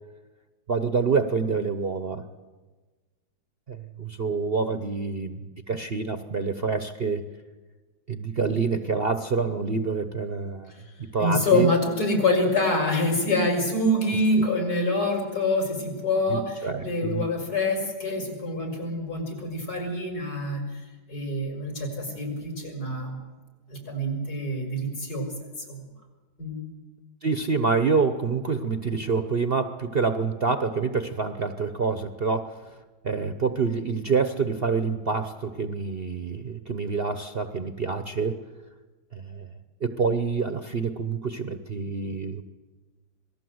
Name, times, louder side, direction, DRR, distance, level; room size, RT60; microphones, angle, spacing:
voice 1, 0.7-2.2 3.7-7.2 8.1-10.7 11.1-11.7 16.3-17.2 27.2-32.8 33.0-38.4 39.1-39.5 39.8-42.4, right 4 dB, 40° right, 9 dB, 0.9 m, -27 dB
voice 2, 10.7-20.8 21.1-23.2 23.7-25.3 25.7-25.9 26.4-26.6, left 2 dB, 60° left, 3 dB, 5.7 m, -26 dB
26.5 x 19.0 x 7.9 m, 1.3 s
omnidirectional pair, 1.8 m